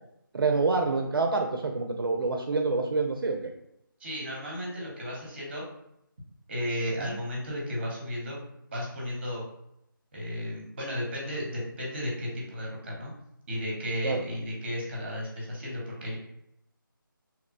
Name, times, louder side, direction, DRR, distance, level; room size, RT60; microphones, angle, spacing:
voice 1, 0.3-3.4 7.0-7.2 14.0-14.2, right 3 dB, 75° right, 3 dB, 0.4 m, -27 dB
voice 2, 4.0-5.6 6.5-8.4 8.7-9.4 10.1-13.1 13.5-16.2, equal, 30° right, -3 dB, 0.9 m, -34 dB
2.8 x 2.1 x 2.5 m, 0.79 s
figure-of-eight pair, 170°, 12 cm